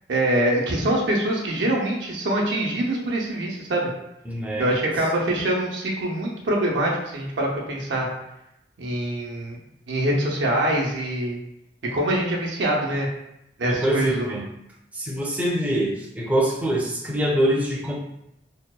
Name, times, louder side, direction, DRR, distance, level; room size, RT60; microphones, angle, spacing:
voice 1, 0.1-3.9 4.6-8.1 8.8-9.6 9.9-11.4 11.9-13.1 13.6-14.2, right 1 dB, 85° right, -2 dB, 0.6 m, -24 dB
voice 2, 4.3-4.7 13.6-14.4 14.9-17.9, right 1 dB, 10° right, -3 dB, 0.4 m, -24 dB
2.7 x 2.0 x 2.2 m, 0.82 s
head